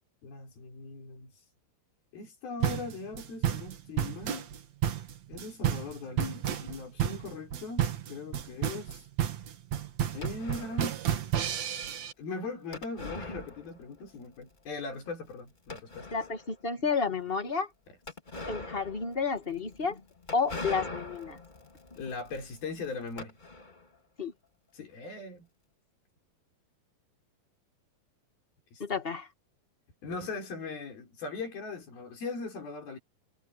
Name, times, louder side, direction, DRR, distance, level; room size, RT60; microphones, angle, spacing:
voice 1, 0.2-1.3 2.1-4.5 5.3-9.0 10.1-11.0 12.2-16.1 22.0-23.4 24.7-25.5 28.7-29.0 30.0-33.0, left 4 dB, 75° left, 6.8 m, -40 dB
sound 1, 2.6-12.1, right 10 dB, 55° right, 2.5 m, -31 dB
sound 2, 10.2-11.0 12.7-14.1 14.4-14.5 15.0-15.1 15.7-16.5 18.1-23.9, left 2 dB, 20° left, 1.5 m, -42 dB
voice 2, 16.1-17.7 18.5-20.0 20.3-21.4 24.2-24.3 28.8-29.3, left 5 dB, 35° left, 0.8 m, -31 dB
omnidirectional pair, 4.3 m